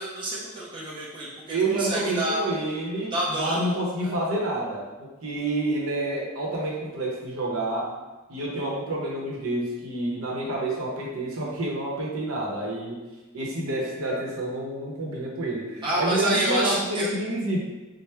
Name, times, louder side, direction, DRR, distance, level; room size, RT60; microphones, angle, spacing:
voice 1, 0.0-2.4 3.1-4.1 15.8-17.1, right 1 dB, 20° right, -7 dB, 0.6 m, -28 dB
voice 2, 1.5-7.9 8.3-13.0 13.3-17.6, right 1 dB, 70° right, -3 dB, 0.8 m, -28 dB
4.3 x 2.0 x 3.3 m, 1.2 s
head